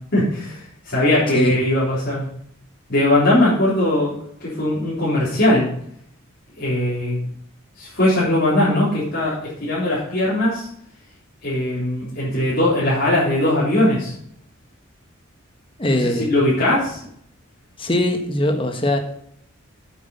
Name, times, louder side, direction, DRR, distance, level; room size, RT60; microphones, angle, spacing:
voice 1, 0.0-2.2 2.9-4.1 4.4-5.7 6.6-7.2 7.8-10.7 11.4-14.1 15.8-17.0, left 1 dB, 50° left, -9 dB, 3.8 m, -20 dB
voice 2, 15.8-16.3 17.8-19.0, left 1 dB, 25° left, 5 dB, 1.2 m, -21 dB
8.5 x 8.0 x 5.4 m, 0.68 s
head